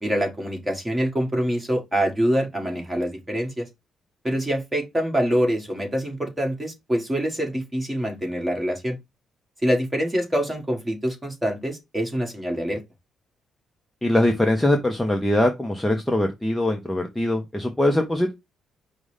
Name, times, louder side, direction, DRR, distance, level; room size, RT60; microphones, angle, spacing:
voice 1, 0.0-3.7 4.2-9.0 9.6-12.8, equal, 10° right, 1.4 m, -25 dB
voice 2, 14.0-18.3, left 1 dB, 5° left, 0.6 m, -22 dB
5.1 x 2.1 x 4.8 m
cardioid pair, 160°, 0 cm